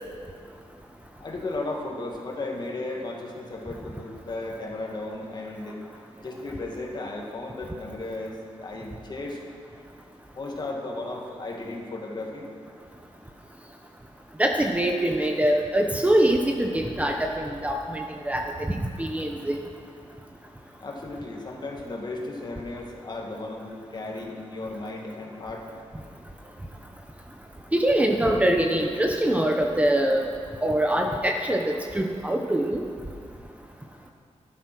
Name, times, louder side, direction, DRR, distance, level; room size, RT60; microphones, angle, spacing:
voice 1, 1.2-5.8 6.2-9.4 10.3-12.5 20.8-25.7 34.0-34.1, left 2 dB, 35° left, 0 dB, 2.2 m, -35 dB
voice 2, 14.4-19.6 27.7-30.2 30.6-32.8, right 1 dB, 10° right, 2 dB, 0.9 m, -24 dB
15.0 x 12.0 x 6.2 m, 2.2 s
wide cardioid pair, 150°, 12 cm